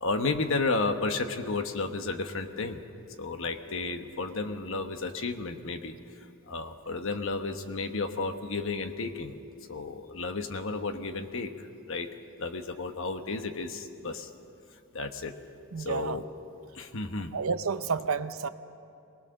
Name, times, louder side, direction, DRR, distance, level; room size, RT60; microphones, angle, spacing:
voice 1, 0.0-2.8 3.2-5.9 6.5-9.3 9.7-12.1 12.4-14.3 14.9-15.3 15.8-16.2 16.7-17.3, left 3 dB, 60° left, 7 dB, 1.1 m, -32 dB
voice 2, 15.7-16.2 17.3-18.5, right 5 dB, 70° right, 12 dB, 0.7 m, -30 dB
23.5 x 19.5 x 6.5 m, 2.6 s
head